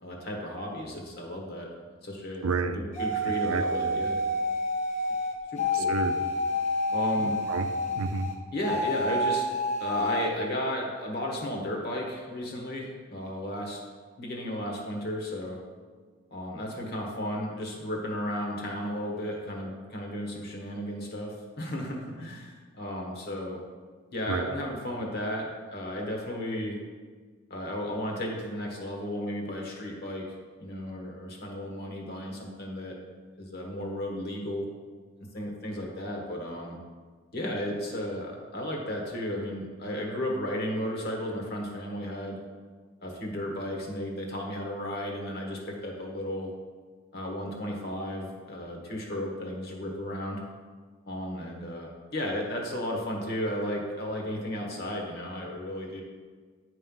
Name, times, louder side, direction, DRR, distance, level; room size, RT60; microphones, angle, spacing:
voice 1, 0.0-1.7 2.0-2.4 2.7-4.2 5.5-5.9 6.9-7.4 8.5-9.4 9.8-13.8 14.2-15.6 16.3-23.6 24.1-26.8 27.5-30.3 30.6-33.0 33.4-34.7 35.3-36.8 37.3-42.4 43.0-46.5 47.1-50.4 51.1-56.0, left 1 dB, 50° left, 0 dB, 1.4 m, -34 dB
voice 2, 2.4-2.8 3.2-4.0 5.7-6.2 7.2-8.3 24.3-24.5, right 4 dB, 85° right, 8 dB, 0.5 m, -31 dB
sound 1, 2.9-8.3 8.6-10.3, left 1 dB, 35° left, 0.8 m, -29 dB
9.6 x 3.3 x 5.4 m, 1.5 s
head